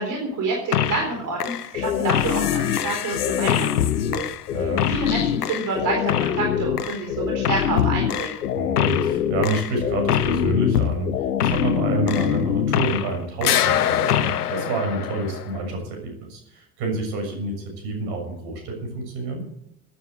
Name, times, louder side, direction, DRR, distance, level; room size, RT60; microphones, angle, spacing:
voice 1, 0.0-3.7 4.0-4.3 4.6-8.4, right 3 dB, 45° right, 0 dB, 4.2 m, -28 dB
sound 1, 0.7-1.1 1.4-13.1 13.4-15.6, left 10 dB, 80° left, 0.9 m, -23 dB
voice 2, 4.5-4.9 8.5-19.5, right 2 dB, 60° right, 3 dB, 6.7 m, -28 dB
16.0 x 9.8 x 7.8 m, 0.79 s
figure-of-eight pair, 65°, 45 cm